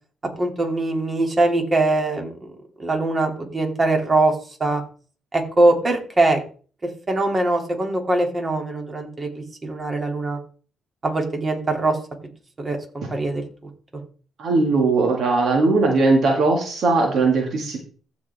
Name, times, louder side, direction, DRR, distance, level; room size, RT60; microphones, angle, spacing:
voice 1, 0.4-2.5 2.8-4.3 4.6-4.8 5.3-6.4 7.1-10.4 11.0-12.0 12.6-13.4 13.9-14.0, right 2 dB, 35° right, 3 dB, 2.7 m, -22 dB
voice 2, 14.4-17.8, right 3 dB, 65° right, 2 dB, 2.0 m, -19 dB
15.0 x 5.1 x 3.5 m, 0.40 s
supercardioid pair, 65°, 0 cm